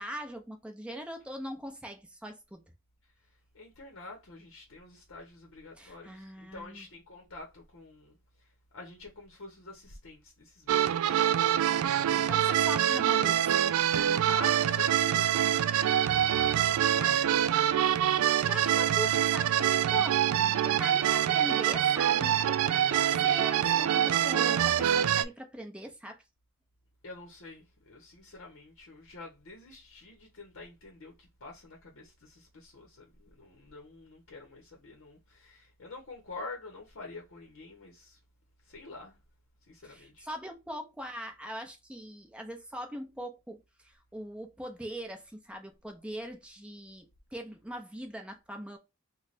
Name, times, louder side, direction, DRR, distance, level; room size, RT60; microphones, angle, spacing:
voice 1, 0.0-2.6 5.8-6.9 12.0-13.4 18.2-26.2 39.8-48.8, equal, 5° right, 0.6 m, -41 dB
voice 2, 3.5-11.5 14.3-15.5 16.0-17.5 27.0-38.2 38.6-39.2 39.7-40.3, left 3 dB, 65° left, 0.8 m, -47 dB
sound 1, 10.7-25.2, right 10 dB, 80° right, 0.3 m, -25 dB
3.2 x 2.2 x 4.0 m
head